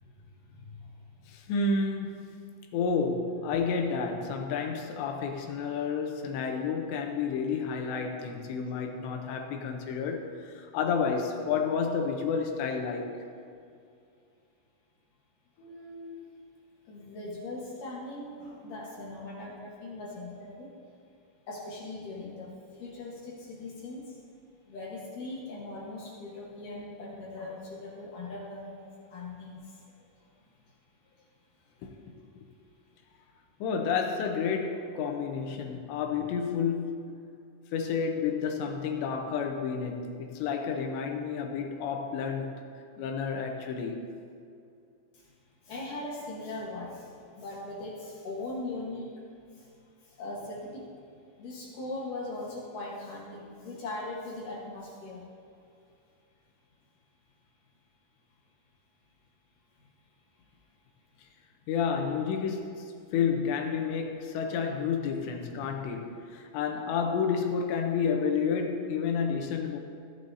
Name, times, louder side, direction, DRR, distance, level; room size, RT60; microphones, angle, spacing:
voice 1, 0.5-0.9 1.2-1.3 15.6-16.3 16.9-20.7 21.5-24.2 24.7-30.3 45.1-45.3 45.6-49.1 49.5-49.7 50.0-50.9 51.4-55.3 59.8-59.9, left 2 dB, 60° left, -5 dB, 2.5 m, -40 dB
voice 2, 1.3-2.4 2.7-13.2 31.8-31.9 32.4-32.5 33.6-37.1 37.7-42.6 43.0-44.0 61.7-69.8, left 5 dB, 85° left, 4 dB, 3.0 m, -30 dB
16.5 x 10.5 x 2.7 m, 2.4 s
omnidirectional pair, 5.1 m